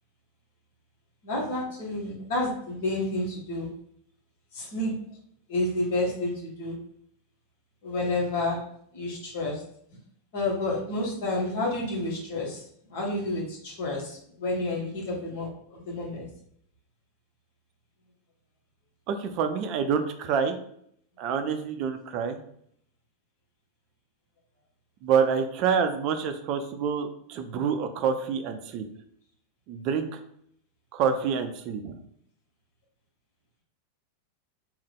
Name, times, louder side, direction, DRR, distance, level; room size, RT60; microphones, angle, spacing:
voice 1, 1.2-3.7 4.5-4.9 5.5-6.7 7.8-8.6 8.9-9.6 10.3-16.3, left 2 dB, 50° left, -3 dB, 1.5 m, -30 dB
voice 2, 19.1-20.6 21.2-22.4 25.0-28.8 29.7-30.2 30.9-31.9, right 6 dB, 40° right, 7 dB, 0.4 m, -27 dB
3.5 x 2.6 x 3.5 m, 0.68 s
figure-of-eight pair, 90°, 0 cm